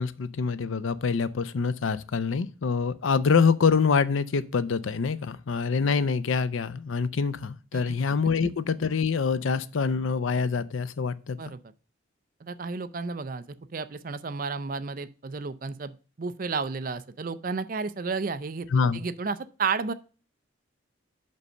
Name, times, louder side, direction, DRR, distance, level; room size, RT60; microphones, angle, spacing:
voice 1, 0.0-11.4 18.7-19.0, left 5 dB, 75° left, 0.5 m, -25 dB
voice 2, 12.4-13.4 13.7-18.7 18.9-19.9, right 4 dB, 45° right, 0.4 m, -32 dB
5.4 x 5.3 x 6.4 m
head